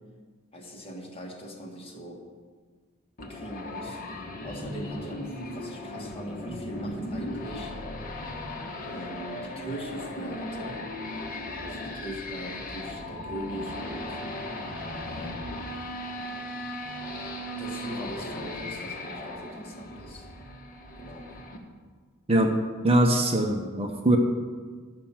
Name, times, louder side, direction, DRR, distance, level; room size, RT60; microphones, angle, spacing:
voice 1, 0.5-2.2 3.2-4.0 4.4-7.7 8.9-10.8 11.6-14.2 15.1-15.7 16.8-17.1 17.6-20.3 21.0-21.3, equal, 25° left, 0 dB, 1.7 m, -40 dB
sound 1, 3.2-21.6, left 1 dB, 45° left, 1.3 m, -37 dB
voice 2, 22.8-24.2, right 1 dB, 30° right, 3 dB, 0.9 m, -22 dB
12.0 x 6.0 x 7.2 m, 1.5 s
head